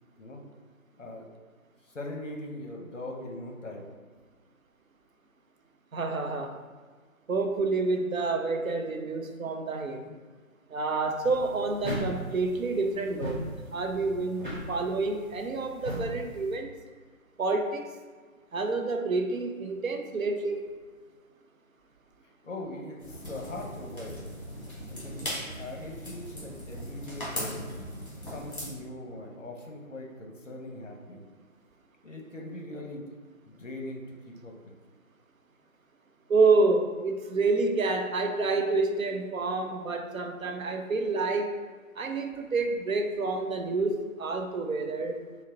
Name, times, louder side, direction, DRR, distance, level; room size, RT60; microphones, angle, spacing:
voice 1, 1.8-3.8 22.4-24.2 24.9-27.7 28.2-31.3 32.0-33.2 33.5-34.5, left 1 dB, 60° left, 0 dB, 0.7 m, -41 dB
voice 2, 5.9-6.6 7.3-10.1 10.7-16.7 17.4-17.9 18.5-20.8 36.3-41.5 42.0-45.2, right 3 dB, 70° right, 5 dB, 0.6 m, -28 dB
sound 1, 11.2-16.6, equal, 35° right, 1.0 m, -38 dB
sound 2, 23.0-28.7, equal, 40° left, 1.4 m, -39 dB
4.0 x 2.1 x 3.8 m, 1.5 s
figure-of-eight pair, 175°, 42 cm